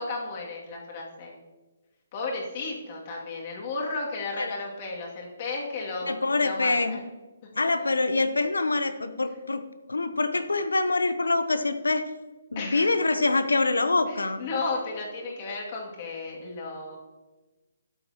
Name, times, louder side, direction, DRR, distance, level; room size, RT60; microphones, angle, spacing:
voice 1, 0.0-1.4 2.1-7.0 7.8-7.9 12.6-13.0 14.1-17.0, left 3 dB, 40° left, -2 dB, 2.5 m, -34 dB
voice 2, 6.1-7.0 7.6-9.6 9.9-12.0 12.5-14.4, left 3 dB, 85° left, 11 dB, 0.8 m, -25 dB
12.5 x 7.9 x 3.0 m, 1.2 s
figure-of-eight pair, 145°, 0 cm